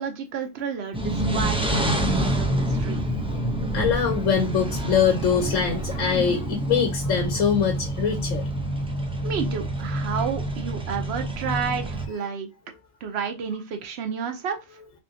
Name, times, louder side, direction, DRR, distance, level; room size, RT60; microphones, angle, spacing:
voice 1, 0.0-3.0 9.2-12.5 13.0-14.6, right 6 dB, 60° right, 6 dB, 1.0 m, -31 dB
sound 1, 0.9-12.1, right 1 dB, 10° right, 0.4 m, -27 dB
voice 2, 3.7-8.4, left 7 dB, 85° left, 4 dB, 1.1 m, -23 dB
3.7 x 3.4 x 2.6 m, 0.25 s
omnidirectional pair, 1.3 m